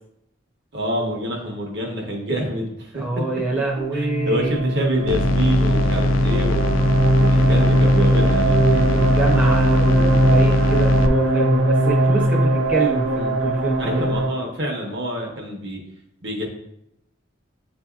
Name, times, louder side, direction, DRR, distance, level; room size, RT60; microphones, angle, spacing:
voice 1, 0.7-3.1 3.9-6.7 7.2-8.6 13.8-15.8 16.2-16.5, equal, 65° right, 0 dB, 1.0 m, -27 dB
voice 2, 2.9-4.6 8.7-14.0, right 2 dB, 10° right, -3 dB, 0.5 m, -26 dB
sound 1, 3.5-14.3, right 1 dB, 85° right, 0.7 m, -19 dB
sound 2, 5.1-11.1, left 2 dB, 90° left, 0.3 m, -22 dB
7.7 x 2.7 x 2.3 m, 0.79 s
head